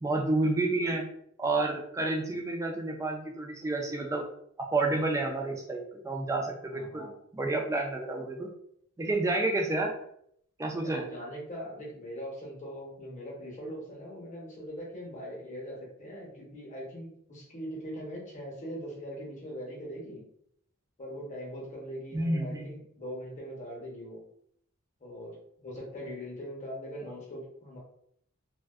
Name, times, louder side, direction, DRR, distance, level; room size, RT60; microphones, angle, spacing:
voice 1, 0.0-1.1 1.4-4.2 4.6-7.1 7.3-8.5 9.0-9.9 10.6-11.0 22.1-22.7, right 2 dB, 15° right, 1 dB, 0.3 m, -30 dB
voice 2, 6.7-7.1 10.8-20.2 21.0-24.2 25.0-25.4 25.6-27.8, equal, 35° left, -3 dB, 0.8 m, -41 dB
2.4 x 2.2 x 2.3 m, 0.69 s
head